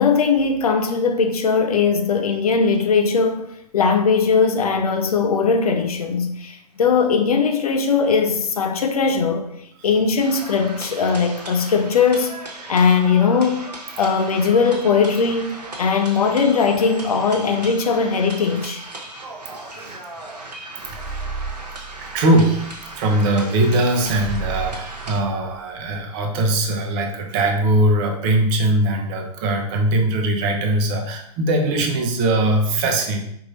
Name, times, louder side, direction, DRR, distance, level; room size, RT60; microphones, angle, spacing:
voice 1, 0.0-3.5 3.7-9.5 9.8-12.3 12.7-13.7 14.0-15.5 15.8-18.8, left 5 dB, 70° left, 0.6 m, -19 dB
sound 1, 10.2-25.2, right 2 dB, 90° right, 0.8 m, -37 dB
sound 2, 20.8-23.0 24.0-26.0, right 4 dB, 45° left, 1.5 m, -33 dB
voice 2, 22.0-22.7 23.0-33.2, right 1 dB, 35° right, 0.7 m, -20 dB
4.6 x 3.0 x 2.6 m
figure-of-eight pair, 115°, 20 cm